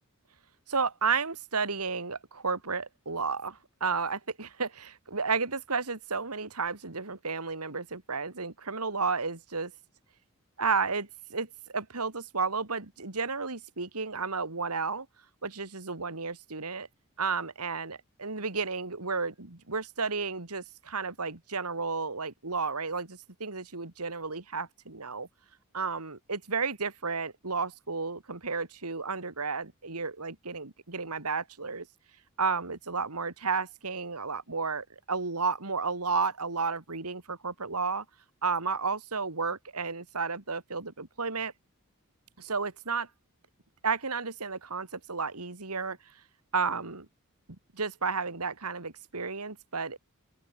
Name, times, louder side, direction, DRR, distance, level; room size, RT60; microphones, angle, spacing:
voice 1, 0.7-9.7 10.6-15.1 15.4-16.9 17.2-25.3 25.7-31.9 32.4-38.0 38.4-41.5 42.4-43.1 43.8-46.0 46.5-47.1 47.7-50.0, right 4 dB, 85° right, 2.6 m, -32 dB
open air
head